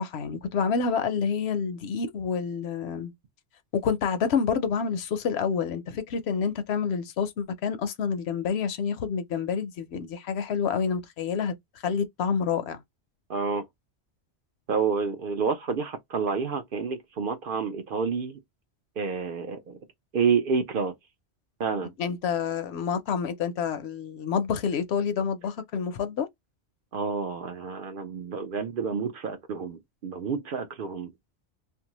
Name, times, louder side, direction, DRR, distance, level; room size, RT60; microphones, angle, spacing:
voice 1, 0.0-3.1 3.8-11.5 11.8-12.8 22.0-26.3, left 6 dB, 70° left, 0.8 m, -28 dB
voice 2, 13.3-13.6 14.7-18.4 19.0-19.8 20.1-20.9 21.6-21.9 26.9-31.1, right 5 dB, 60° right, 0.6 m, -29 dB
2.6 x 2.2 x 2.8 m
omnidirectional pair, 1.2 m